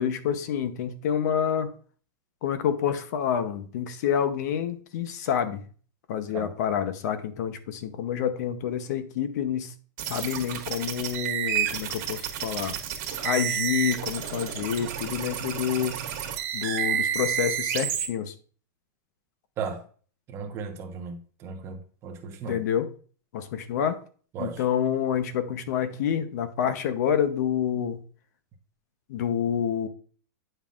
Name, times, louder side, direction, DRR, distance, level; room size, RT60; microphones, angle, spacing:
voice 1, 0.0-1.7 2.4-5.6 6.1-9.7 10.0-12.7 13.2-16.0 16.5-18.3 22.5-22.9 23.3-24.0 24.4-28.0 29.1-29.9, left 9 dB, 60° left, 0.7 m, -28 dB
sound 1, 10.0-18.1, right 9 dB, 50° right, 1.6 m, -30 dB
voice 2, 20.3-22.6 24.3-24.6, right 5 dB, 25° right, 1.0 m, -36 dB
8.8 x 5.4 x 2.4 m
supercardioid pair, 160°, 11 cm